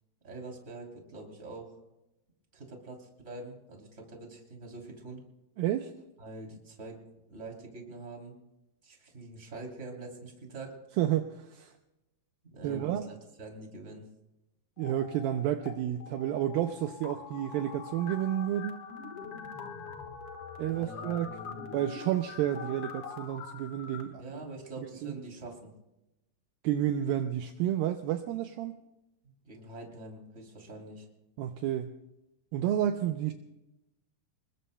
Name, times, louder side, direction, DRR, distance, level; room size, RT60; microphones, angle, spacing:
voice 1, 0.2-1.8 2.5-5.2 6.2-7.0 7.3-8.3 8.8-10.8 12.5-14.1 20.6-21.7 24.2-25.7 29.4-31.1, right 2 dB, 20° right, 1 dB, 2.8 m, -45 dB
voice 2, 5.6-5.9 11.0-11.7 12.6-13.1 14.8-18.9 20.6-21.3 21.7-24.2 24.8-25.1 26.6-28.8 31.4-31.9 32.5-33.3, right 11 dB, 80° right, 6 dB, 2.2 m, -30 dB
sound 1, 14.8-15.7 16.0-24.0, left 5 dB, 60° left, 1.5 m, -44 dB
27.0 x 21.0 x 2.2 m, 0.94 s
omnidirectional pair, 4.7 m